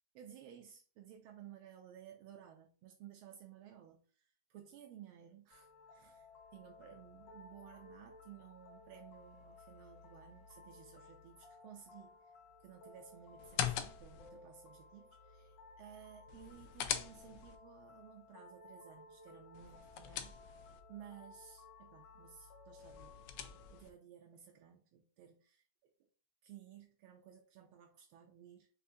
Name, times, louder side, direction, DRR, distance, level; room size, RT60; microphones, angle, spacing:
voice 1, 0.1-6.3 6.5-20.4 20.9-25.9 26.4-28.7, right 9 dB, 80° right, 3 dB, 1.4 m, -57 dB
sound 1, 5.5-23.8, left 3 dB, 65° left, 1.3 m, -58 dB
sound 2, 13.4-14.3 16.3-17.6 19.5-20.8 22.8-23.9, left 10 dB, 80° left, 0.9 m, -41 dB
5.9 x 2.8 x 2.7 m, 0.40 s
omnidirectional pair, 2.3 m